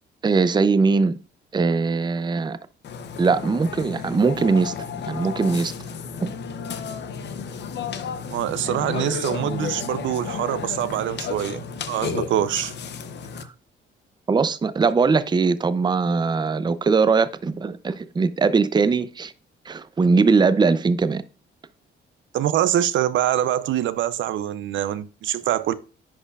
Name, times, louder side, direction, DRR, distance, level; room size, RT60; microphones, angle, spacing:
voice 1, 0.2-1.2 1.5-2.6 3.2-4.7 5.1-5.7 6.2-6.3 13.3-13.5 14.3-19.3 19.7-21.2, right 4 dB, 20° right, 0.5 m, -20 dB
Burping eructation, 2.8-13.4, left 6 dB, 60° left, 0.8 m, -33 dB
voice 2, 8.3-12.7 22.3-25.7, right 11 dB, 75° right, 0.5 m, -24 dB
10.5 x 4.3 x 2.4 m
cardioid pair, 90°, 20 cm